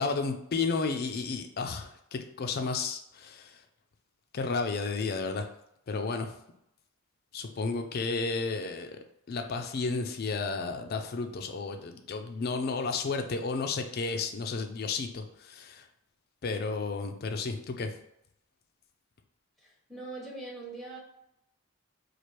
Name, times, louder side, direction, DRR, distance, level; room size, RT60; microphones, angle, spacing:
voice 1, 0.0-3.5 4.3-5.5 5.9-6.3 7.3-9.0 9.3-15.8 16.4-17.9, left 4 dB, 45° left, 5 dB, 0.4 m, -32 dB
voice 2, 19.6-21.0, right 2 dB, ahead, -2 dB, 0.8 m, -42 dB
3.1 x 2.4 x 4.4 m, 0.78 s
head